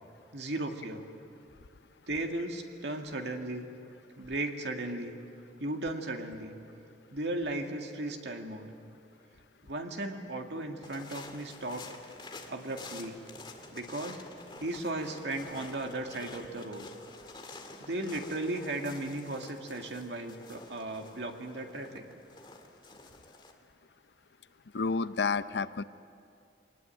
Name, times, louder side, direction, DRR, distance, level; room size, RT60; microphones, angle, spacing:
voice 1, 0.3-1.0 2.1-3.7 4.2-5.1 5.6-6.5 7.1-8.7 9.6-11.9 12.5-13.2 13.7-14.2 14.6-16.9 17.8-22.1, right 2 dB, 80° right, 3 dB, 2.1 m, -36 dB
sound 1, 10.8-23.5, left 2 dB, 25° left, 2.0 m, -49 dB
voice 2, 24.7-25.8, left 4 dB, 75° left, 14 dB, 0.6 m, -30 dB
23.5 x 19.5 x 9.2 m, 2.5 s
head